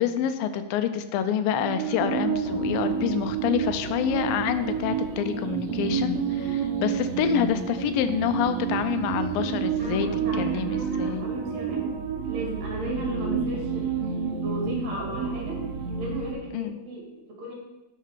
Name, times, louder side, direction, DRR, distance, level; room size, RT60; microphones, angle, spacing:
voice 1, 0.0-10.1 10.4-11.3 16.5-16.8, left 9 dB, 80° left, 9 dB, 2.2 m, -27 dB
sound 1, 1.6-16.3, right 6 dB, 75° right, 1.6 m, -29 dB
voice 2, 9.8-12.0 12.2-13.9 14.3-15.6 16.0-17.5, equal, 50° right, -2 dB, 2.8 m, -36 dB
8.0 x 4.9 x 4.6 m, 1.0 s
omnidirectional pair, 4.2 m